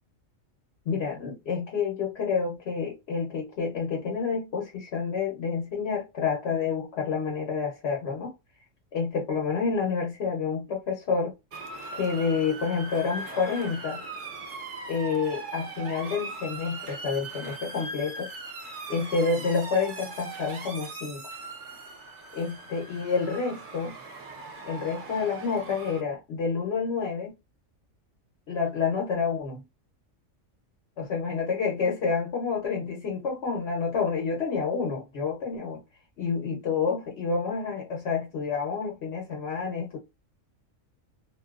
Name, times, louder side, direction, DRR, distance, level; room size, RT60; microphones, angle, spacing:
voice 1, 0.8-8.3 8.9-11.3 11.9-14.0 14.9-18.3 18.9-21.3 22.3-23.9 24.6-27.3 28.5-29.6 31.0-35.8 36.2-40.0, left 5 dB, 55° left, 1.0 m, -29 dB
Motor vehicle (road) / Siren, 11.5-26.0, right 3 dB, 45° right, 0.7 m, -40 dB
2.7 x 2.2 x 2.3 m
omnidirectional pair, 1.4 m